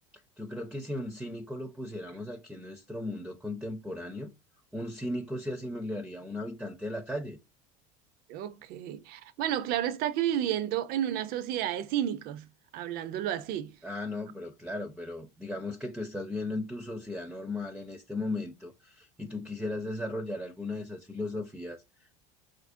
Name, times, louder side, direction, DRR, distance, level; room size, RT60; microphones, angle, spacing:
voice 1, 0.4-4.3 4.7-7.4 13.8-22.2, left 2 dB, 5° right, 0.5 m, -36 dB
voice 2, 8.3-12.5 12.7-13.7, right 11 dB, 55° right, 0.4 m, -31 dB
4.0 x 2.5 x 2.5 m
supercardioid pair, 100°, 18 cm